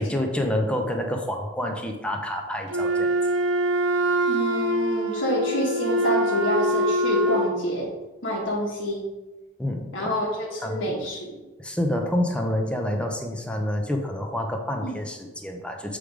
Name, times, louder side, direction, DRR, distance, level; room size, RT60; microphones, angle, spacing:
voice 1, 0.0-3.1 9.6-10.1 10.6-10.9 11.6-16.0, left 1 dB, 5° left, 3 dB, 0.8 m, -28 dB
Wind instrument woodwind instrument, 2.7-7.6, right 1 dB, 75° right, 0.7 m, -24 dB
voice 2, 4.3-7.9 8.2-9.1 9.9-11.4 14.8-15.0, equal, 90° left, -4 dB, 1.4 m, -27 dB
7.7 x 3.4 x 5.0 m, 1.1 s
head